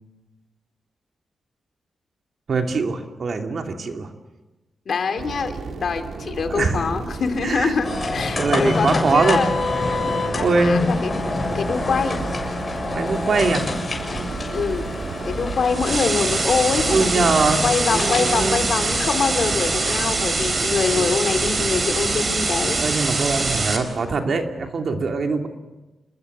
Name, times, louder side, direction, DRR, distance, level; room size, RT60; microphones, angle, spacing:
voice 1, 2.5-4.1 6.5-6.8 7.4-7.8 8.4-9.4 10.2-10.8 12.9-13.7 16.9-17.6 17.9-18.6 21.0-21.1 22.8-25.5, right 3 dB, 55° right, 4 dB, 2.7 m, -22 dB
voice 2, 4.9-9.5 10.3-11.3 11.5-12.2 14.5-15.0 15.2-17.3 17.6-22.8, left 5 dB, 60° left, 6 dB, 3.1 m, -24 dB
sound 1, 5.2-23.6, right 5 dB, 75° right, 1.5 m, -33 dB
sound 2, 7.8-20.0, left 2 dB, 30° left, 7.3 m, -28 dB
sound 3, 15.7-23.8, right 3 dB, 35° right, 4.4 m, -24 dB
28.0 x 21.5 x 8.1 m, 1.1 s
wide cardioid pair, 135°, 0 cm